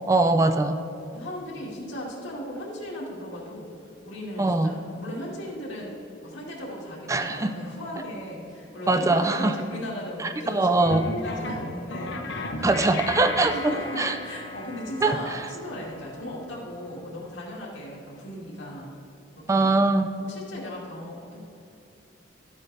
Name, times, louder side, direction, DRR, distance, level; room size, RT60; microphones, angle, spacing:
voice 1, 0.0-0.8 4.4-4.7 7.1-7.5 8.9-9.6 10.2-11.1 12.6-13.5 14.0-14.2 15.0-15.2 19.5-20.1, right 2 dB, 15° right, 8 dB, 0.3 m, -22 dB
voice 2, 1.1-3.7 4.0-6.0 6.2-13.1 13.5-18.9 19.5-19.7 20.2-21.4, equal, 75° left, -4 dB, 2.3 m, -37 dB
sound 1, 10.8-17.5, left 2 dB, 60° left, 0.8 m, -36 dB
13.0 x 8.5 x 3.3 m, 2.8 s
head